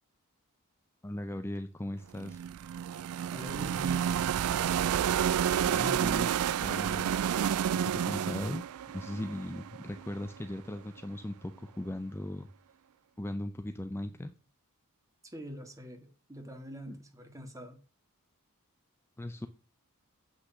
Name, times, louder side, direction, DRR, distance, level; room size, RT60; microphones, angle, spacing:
voice 1, 1.0-2.4 5.6-7.2 7.8-8.7 8.9-12.5 13.2-14.3 16.9-17.0 19.2-19.5, left 1 dB, 10° left, 9 dB, 0.5 m, -38 dB
sound 1, 2.2-10.2, right 9 dB, 80° right, 0.3 m, -30 dB
voice 2, 3.3-4.3 15.2-17.8, equal, 15° right, 5 dB, 1.9 m, -44 dB
8.1 x 6.2 x 5.8 m, 0.38 s
head